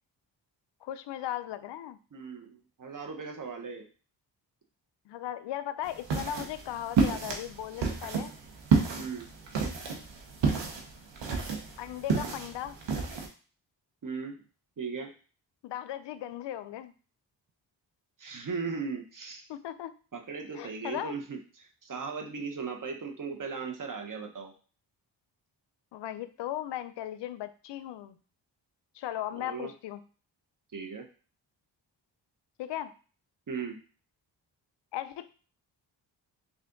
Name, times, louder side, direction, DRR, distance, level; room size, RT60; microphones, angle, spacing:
voice 1, 0.8-2.0 5.1-8.3 11.8-12.8 15.6-16.9 19.5-19.9 20.5-21.2 25.9-28.2 28.9-30.0 32.6-32.9 34.9-35.3, left 12 dB, 65° left, 13 dB, 0.5 m, -37 dB
voice 2, 2.1-3.9 8.9-9.3 14.0-14.4 14.8-15.1 18.2-19.4 20.1-24.5 29.3-29.7 30.7-31.0 33.5-33.8, right 5 dB, 45° right, 3 dB, 0.9 m, -37 dB
sound 1, 5.9-13.3, right 5 dB, 65° right, 1.1 m, -30 dB
3.4 x 2.6 x 3.8 m, 0.38 s
supercardioid pair, 45°, 46 cm